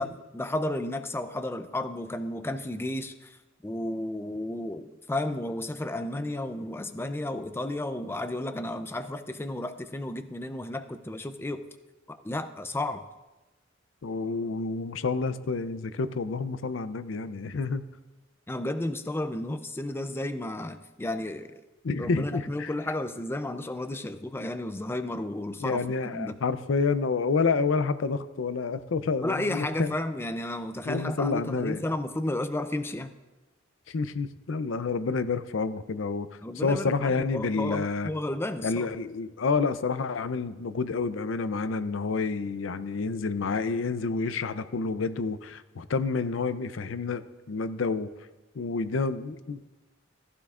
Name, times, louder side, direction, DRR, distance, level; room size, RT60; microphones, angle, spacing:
voice 1, 0.0-11.7 12.1-13.0 18.5-21.6 22.0-26.4 29.2-33.1 36.4-38.9, left 1 dB, 10° left, 9 dB, 0.4 m, -33 dB
voice 2, 14.0-17.8 21.8-22.7 25.6-29.9 30.9-31.9 33.9-36.3 36.6-38.1 38.6-48.1 48.6-49.7, left 4 dB, 75° left, 13 dB, 0.5 m, -29 dB
15.0 x 14.5 x 2.4 m, 1.1 s
head